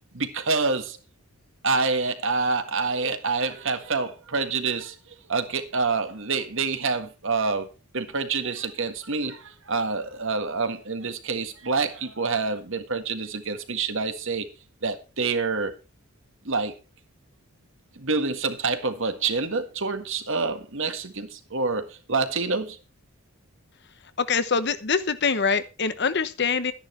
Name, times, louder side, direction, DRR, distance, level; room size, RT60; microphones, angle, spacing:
voice 1, 0.1-1.0 1.6-4.9 5.3-7.7 7.9-14.4 14.8-15.7 16.4-16.7 18.0-22.8, right 4 dB, 60° right, 1.7 m, -27 dB
voice 2, 24.2-26.7, left 5 dB, 50° left, 1.0 m, -24 dB
12.5 x 10.5 x 4.4 m
head